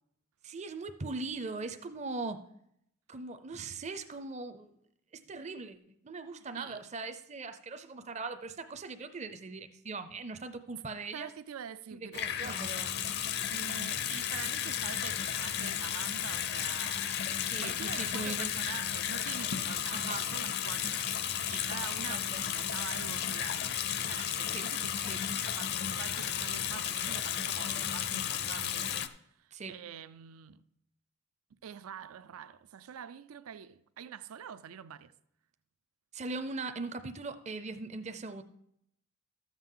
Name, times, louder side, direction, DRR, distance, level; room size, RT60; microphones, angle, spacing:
voice 1, 0.4-2.4 3.1-4.7 5.1-5.8 6.0-11.3 11.9-12.9 17.5-18.6 19.9-20.3 22.1-22.5 24.5-24.7 25.1-25.2 29.5-29.8 36.1-38.4, right 3 dB, 30° right, 0.5 m, -40 dB
voice 2, 11.1-12.8 13.5-17.1 17.6-20.1 20.3-21.1 21.5-23.7 24.1-25.0 25.5-29.0 29.4-30.6 31.6-35.1, right 8 dB, 85° right, 0.4 m, -45 dB
Water tap faucet / Sink (filling or washing) / Bathtub (filling or washing), 12.1-29.1, left 9 dB, 50° left, 0.5 m, -33 dB
13.5 x 7.3 x 3.8 m
head